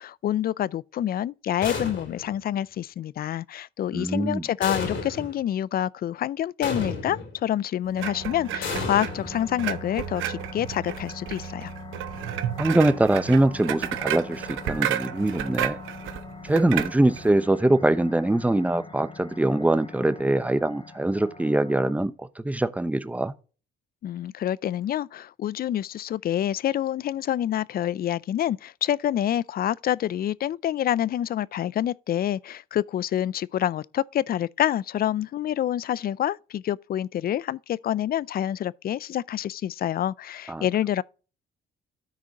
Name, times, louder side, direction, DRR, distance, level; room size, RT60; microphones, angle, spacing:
voice 1, 0.0-11.7 24.0-41.0, left 11 dB, 50° left, 0.4 m, -27 dB
sound 1, 1.6-2.4 4.6-5.4 6.6-7.4 8.6-9.8, left 4 dB, 70° left, 3.3 m, -32 dB
voice 2, 3.9-4.4 12.6-15.8 16.4-23.3 40.5-40.7, right 1 dB, 5° right, 0.7 m, -23 dB
sound 2, 8.0-22.0, left 5 dB, 25° left, 1.2 m, -43 dB
sound 3, 8.0-17.3, right 12 dB, 85° right, 0.8 m, -32 dB
13.0 x 4.9 x 2.9 m
cardioid pair, 90°, 20 cm